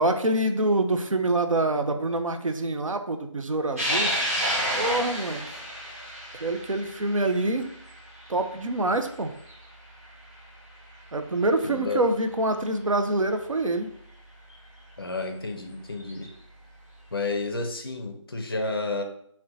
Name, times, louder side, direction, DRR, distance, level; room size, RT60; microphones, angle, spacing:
voice 1, 0.0-4.1 4.7-5.6 6.4-7.7 8.3-9.4 11.1-13.9, right 2 dB, 85° right, 7 dB, 0.4 m, -26 dB
sound 1, 3.8-10.4 10.9-11.0 12.2-12.3 14.5-14.6 16.0-16.3, equal, 30° right, 0.9 m, -31 dB
voice 2, 11.7-12.1 15.0-16.3 17.1-19.0, left 3 dB, 45° left, 4 dB, 0.4 m, -31 dB
2.6 x 2.1 x 3.8 m, 0.66 s
figure-of-eight pair, 165°, 16 cm